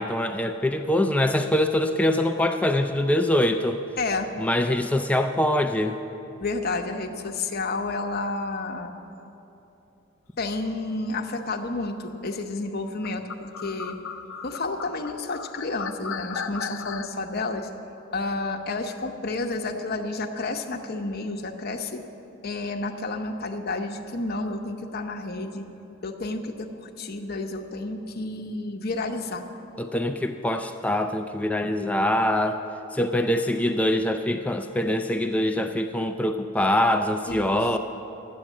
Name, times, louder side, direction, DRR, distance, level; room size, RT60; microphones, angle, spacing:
voice 1, 0.0-3.8 4.4-6.0 29.8-32.6 32.9-37.8, left 1 dB, 5° left, 6 dB, 0.3 m, -24 dB
voice 2, 4.0-4.3 6.4-8.9 10.4-14.0 14.4-17.7 18.1-22.0 22.4-25.7 26.0-29.4 37.3-37.6, left 3 dB, 50° left, 4 dB, 0.8 m, -30 dB
sound 1, 13.0-17.1, left 6 dB, 80° left, 0.6 m, -35 dB
11.5 x 8.7 x 7.4 m, 2.9 s
head